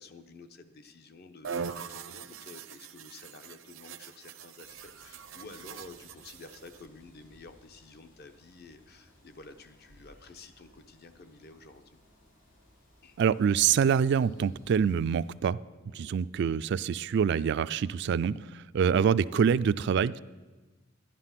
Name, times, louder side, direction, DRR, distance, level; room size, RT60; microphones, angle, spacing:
voice 1, 0.0-12.0 13.0-13.2 15.9-16.2, left 3 dB, 55° left, 8 dB, 0.9 m, -51 dB
sound 1, 1.4-6.9, right 6 dB, 85° right, 0.7 m, -42 dB
sound 2, 4.6-15.3, equal, 90° left, 4.1 m, -60 dB
voice 2, 13.2-15.6 15.9-20.2, right 7 dB, 60° right, 18 dB, 0.3 m, -26 dB
11.5 x 11.5 x 5.8 m, 1.2 s
head